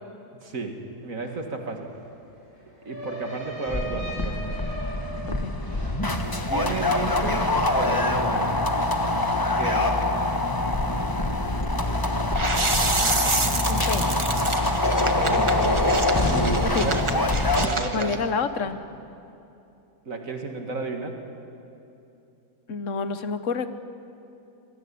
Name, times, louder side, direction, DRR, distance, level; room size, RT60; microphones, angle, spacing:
voice 1, 0.4-1.9 2.9-4.5 6.5-7.5 7.8-8.6 9.6-9.9 14.9-17.0 17.6-18.1 20.1-21.2, right 3 dB, 65° right, 4 dB, 2.4 m, -32 dB
sound 1, 1.2-1.3 1.6-6.8 7.1-7.9, right 1 dB, 35° left, 8.1 m, -38 dB
sound 2, 3.7-17.7, left 2 dB, 15° left, 1.1 m, -24 dB
sound 3, 12.3-18.2, right 3 dB, 20° right, 1.1 m, -29 dB
voice 2, 13.7-14.2 16.6-16.9 17.9-18.8 22.7-23.7, left 5 dB, 60° left, 11 dB, 1.3 m, -28 dB
25.0 x 17.0 x 8.5 m, 2.9 s
omnidirectional pair, 1.5 m